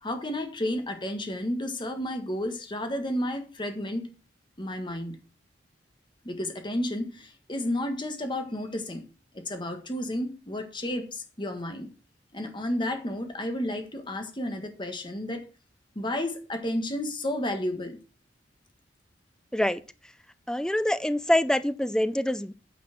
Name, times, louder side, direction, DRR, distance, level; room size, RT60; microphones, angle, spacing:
voice 1, 0.0-4.2 4.6-5.2 6.3-9.0 9.3-11.9 12.3-15.5 16.0-18.0, left 1 dB, 25° left, 1.6 m, -32 dB
voice 2, 20.5-22.5, left 1 dB, 5° left, 0.4 m, -25 dB
9.4 x 5.9 x 6.0 m
head